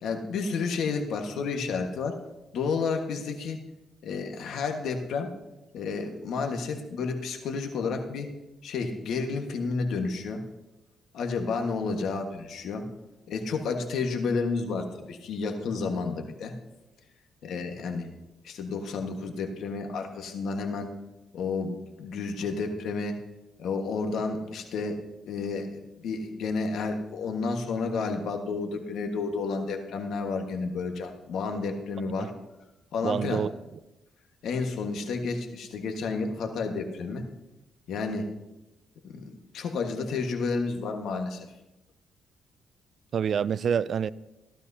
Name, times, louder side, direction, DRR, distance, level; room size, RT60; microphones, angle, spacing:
voice 1, 0.0-2.2 2.5-3.6 4.0-5.3 5.7-8.3 8.6-10.4 11.1-12.9 13.3-16.5 17.4-18.1 18.4-20.9 21.3-23.2 23.6-32.3 32.9-33.4 34.4-37.2 37.9-38.3 39.0-41.5, left 4 dB, 75° left, 1.5 m, -31 dB
voice 2, 33.0-33.5 43.1-44.1, right 7 dB, 55° right, 0.3 m, -27 dB
16.0 x 12.0 x 2.8 m
cardioid pair, 95°, 0 cm